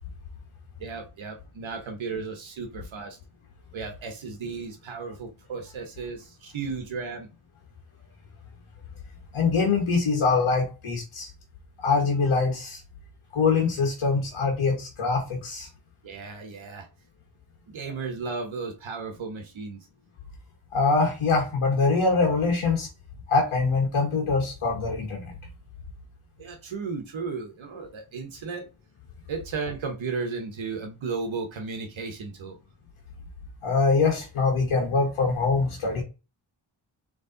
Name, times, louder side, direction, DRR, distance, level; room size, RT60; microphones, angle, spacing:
voice 1, 0.8-3.2 3.7-7.3 16.0-16.9 17.7-19.9 26.4-28.7 29.3-32.6, right 4 dB, 70° right, 1.1 m, -34 dB
voice 2, 9.3-11.3 11.8-12.8 13.3-15.7 20.7-22.9 23.3-25.3 33.6-36.0, left 4 dB, 75° left, 1.4 m, -23 dB
4.0 x 3.3 x 3.8 m
cardioid pair, 65°, 49 cm